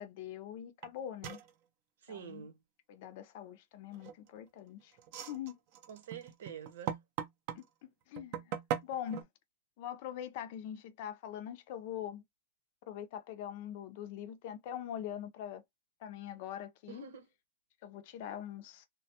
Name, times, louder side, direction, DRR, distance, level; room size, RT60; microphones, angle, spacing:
voice 1, 0.0-1.4 2.1-2.4 2.9-4.9 5.3-5.5 7.5-9.3 9.8-12.2 12.9-15.6 16.0-17.1 17.8-18.9, left 10 dB, 40° left, 0.5 m, -43 dB
sound 1, 0.8-0.9 1.2-1.5 3.9-4.4 5.0-7.6 8.2-9.2, right 9 dB, 35° right, 0.5 m, -39 dB
voice 2, 2.0-2.6 5.9-7.0 16.9-17.3, right 7 dB, 75° right, 0.9 m, -47 dB
3.3 x 2.2 x 2.7 m
supercardioid pair, 175°, 0 cm